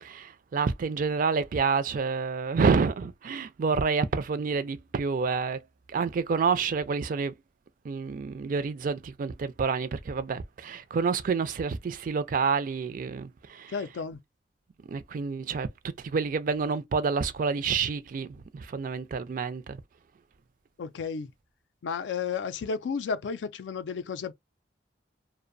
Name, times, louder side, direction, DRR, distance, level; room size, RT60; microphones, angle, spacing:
voice 1, 0.0-5.6 5.9-7.3 7.8-13.7 14.9-15.7 16.0-19.8, right 5 dB, 50° right, 0.4 m, -28 dB
voice 2, 13.7-14.2 20.8-21.3 21.8-24.3, left 5 dB, 90° left, 0.4 m, -32 dB
2.6 x 2.0 x 2.5 m
head